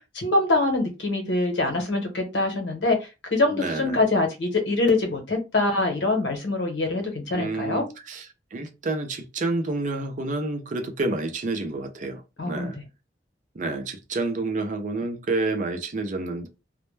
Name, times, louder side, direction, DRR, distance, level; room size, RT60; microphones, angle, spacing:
voice 1, 0.1-7.9 12.4-12.7, left 2 dB, 80° left, 1.0 m, -24 dB
voice 2, 3.5-4.0 7.3-8.3 8.5-12.2 12.5-12.8 13.5-16.5, right 2 dB, 45° right, 0.5 m, -29 dB
2.1 x 2.1 x 3.1 m
head